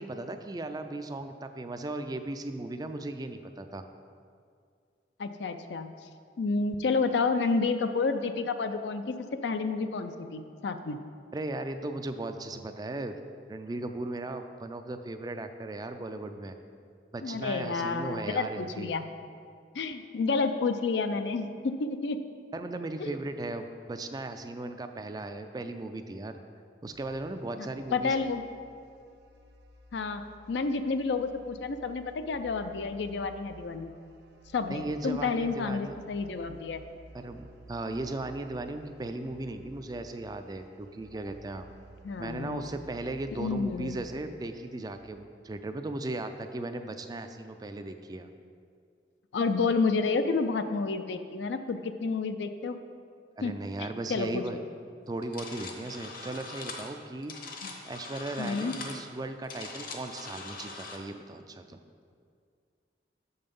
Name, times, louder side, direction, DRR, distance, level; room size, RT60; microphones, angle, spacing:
voice 1, 0.0-3.8 11.3-13.2 13.5-16.5 17.1-18.9 22.5-26.4 26.8-28.2 34.7-36.0 37.1-41.7 42.2-48.3 53.4-54.6 55.1-57.3 57.8-61.8, right 2 dB, 20° right, 8 dB, 0.3 m, -37 dB
voice 2, 5.2-5.9 6.4-9.1 9.4-11.0 17.2-19.0 19.7-22.2 23.0-23.1 27.6-28.4 29.9-30.2 30.5-33.9 34.5-36.8 42.0-42.7 43.4-44.0 49.3-52.8 53.4-53.5 54.1-54.4 57.6-57.7 58.4-58.7, left 4 dB, 70° left, 9 dB, 0.4 m, -30 dB
sound 1, 26.9-45.1, right 2 dB, 60° right, 0.6 m, -54 dB
sound 2, 55.2-61.0, left 3 dB, 50° left, 0.9 m, -42 dB
6.8 x 5.5 x 5.3 m, 2.2 s
head